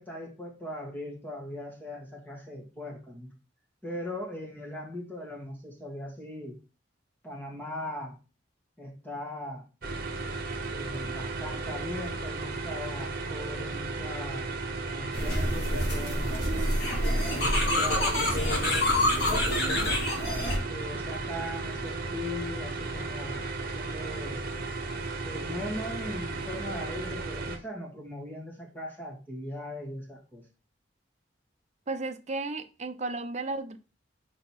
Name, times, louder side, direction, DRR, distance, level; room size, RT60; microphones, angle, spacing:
voice 1, 0.0-3.3 3.8-6.6 7.2-8.2 8.8-9.6 10.6-14.5 14.9-16.4 17.2-19.8 20.7-24.5 25.2-30.4, left 1 dB, 10° left, 1.9 m, -39 dB
sound 1, 9.8-27.6, right 3 dB, 55° right, 1.2 m, -35 dB
sound 2, 15.1-20.6, left 1 dB, 65° left, 2.2 m, -27 dB
voice 2, 31.9-33.8, right 3 dB, 40° right, 0.7 m, -34 dB
5.1 x 4.0 x 5.9 m
head